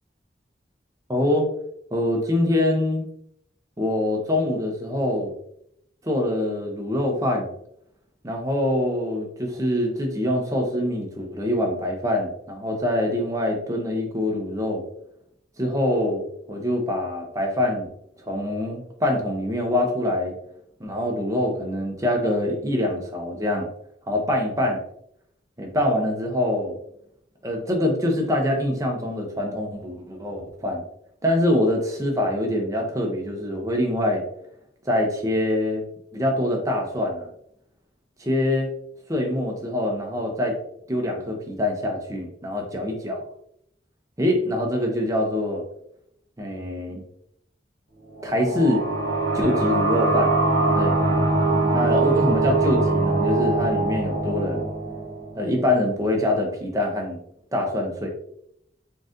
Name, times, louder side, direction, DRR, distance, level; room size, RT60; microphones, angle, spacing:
voice 1, 1.1-1.5 1.9-3.1 3.8-5.3 6.0-7.5 8.2-14.8 15.6-16.2 16.5-17.9 18.2-20.3 20.8-23.7 24.1-24.8 25.6-26.8 27.4-30.8 31.2-34.2 34.9-35.8 36.1-37.3 38.2-38.7 39.1-40.6 40.9-43.2 44.2-45.6 46.4-47.0 48.2-48.8 49.3-50.3 50.7-51.0 51.7-54.6 55.4-57.2 57.5-58.1, left 1 dB, 20° right, 1 dB, 0.7 m, -24 dB
sound 1, 48.2-55.6, right 3 dB, 60° right, 1.3 m, -22 dB
3.9 x 3.7 x 2.5 m, 0.73 s
head